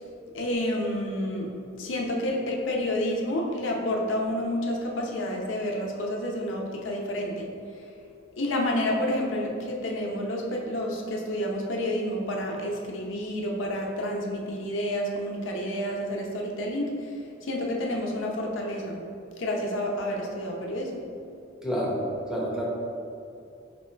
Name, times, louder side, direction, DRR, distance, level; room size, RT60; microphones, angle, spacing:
voice 1, 0.3-1.5 1.8-7.5 8.4-17.1 17.4-19.0 19.4-21.0, left 1 dB, 85° left, 0 dB, 0.6 m, -29 dB
voice 2, 21.6-22.0 22.3-22.6, equal, 5° right, -5 dB, 0.7 m, -28 dB
3.2 x 2.9 x 4.5 m, 2.5 s
head